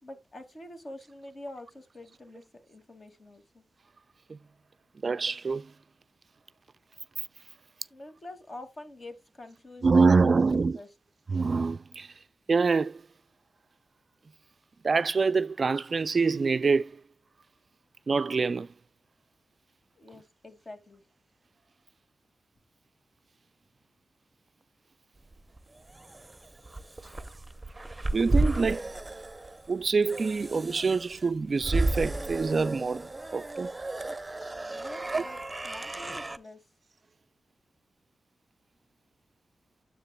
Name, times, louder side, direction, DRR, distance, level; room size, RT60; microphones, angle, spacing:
voice 1, 0.0-3.6 7.9-10.9 20.0-21.1 34.7-35.4 35.6-36.7, left 1 dB, 45° left, 2.2 m, -46 dB
voice 2, 5.0-5.7 9.8-10.8 11.3-12.1 12.5-13.0 14.8-17.0 18.1-18.7 28.1-28.9 29.7-33.7 35.1-35.2, right 4 dB, 50° right, 0.3 m, -25 dB
sound 1, 25.3-36.4, right 2 dB, 20° right, 0.8 m, -33 dB
9.7 x 7.6 x 2.3 m
cardioid pair, 70°, 0 cm